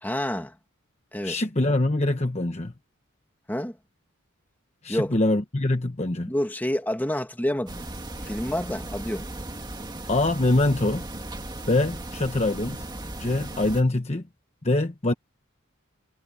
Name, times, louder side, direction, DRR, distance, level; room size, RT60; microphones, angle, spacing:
voice 1, 0.0-0.5 1.1-1.4 3.5-3.8 4.9-5.1 6.3-7.8 8.2-9.3, left 1 dB, 10° left, 2.1 m, -28 dB
voice 2, 1.2-2.7 4.8-6.3 10.1-11.1 11.7-12.9 13.2-14.2 14.6-15.1, left 2 dB, 30° left, 1.1 m, -24 dB
sound 1, 7.7-13.8, right 1 dB, 20° right, 2.0 m, -37 dB
head